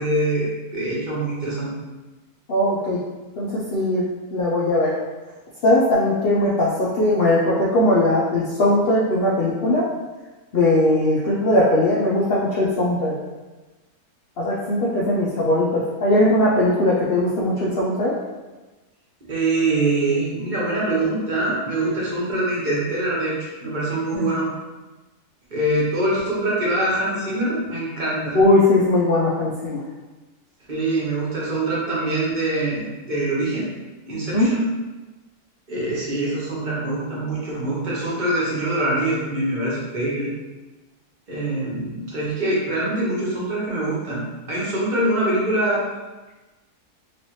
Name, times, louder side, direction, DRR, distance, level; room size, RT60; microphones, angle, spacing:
voice 1, 0.0-1.7 19.3-24.5 25.5-28.4 30.7-33.7 34.1-34.7 35.7-40.3 41.3-45.8, right 2 dB, 40° right, -6 dB, 0.8 m, -24 dB
voice 2, 2.5-3.0 3.4-4.0 4.3-4.9 5.6-9.9 10.5-13.1 14.4-18.2 24.1-24.3 28.3-29.8 34.3-34.5, left 1 dB, 70° left, -6 dB, 0.5 m, -19 dB
3.1 x 2.9 x 3.0 m, 1.2 s
omnidirectional pair, 1.6 m